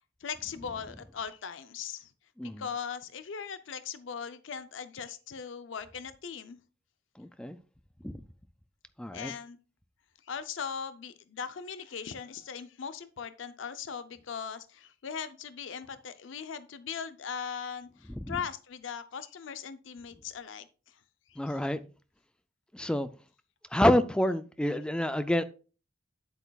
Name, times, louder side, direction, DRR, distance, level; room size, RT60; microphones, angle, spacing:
voice 1, 0.2-2.1 2.6-6.6 9.1-9.6 10.2-21.0 21.3-21.6, left 7 dB, 75° left, 0.5 m, -39 dB
voice 2, 7.2-7.6 8.0-8.2 9.0-9.3 18.3-18.4 21.4-21.8 22.7-23.1 23.7-25.4, left 1 dB, 5° left, 0.3 m, -27 dB
9.0 x 8.0 x 2.3 m
head